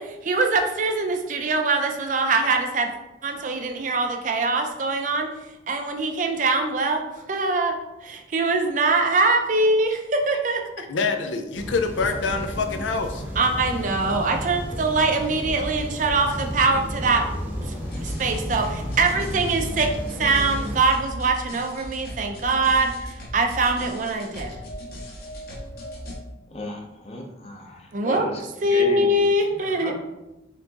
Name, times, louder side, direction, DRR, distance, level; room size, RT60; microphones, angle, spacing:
voice 1, 0.0-2.9 3.2-5.3 5.7-7.0 7.3-10.6 13.4-17.7 18.0-24.5 27.9-28.3 28.6-29.9, right 3 dB, 45° right, 4 dB, 0.5 m, -23 dB
voice 2, 10.8-13.2, left 4 dB, 90° left, 6 dB, 0.5 m, -26 dB
tokyo park at dusk, 11.5-20.8, equal, 10° right, 0.8 m, -32 dB
sound 1, 17.8-26.1, equal, 55° left, 1.1 m, -37 dB
voice 3, 26.5-29.1 29.5-29.9, left 1 dB, 35° left, 1 dB, 0.7 m, -34 dB
4.4 x 3.8 x 2.9 m, 0.98 s
head